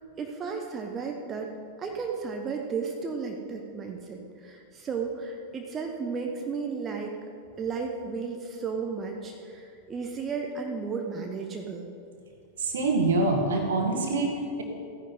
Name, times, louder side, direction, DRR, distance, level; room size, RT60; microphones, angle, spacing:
voice 1, 0.2-1.5 1.8-7.1 7.6-11.9, right 5 dB, 25° right, 2 dB, 1.1 m, -34 dB
voice 2, 12.6-14.6, right 3 dB, 65° right, 3 dB, 1.8 m, -25 dB
15.0 x 10.0 x 4.3 m, 2.5 s
figure-of-eight pair, 90°, 0 cm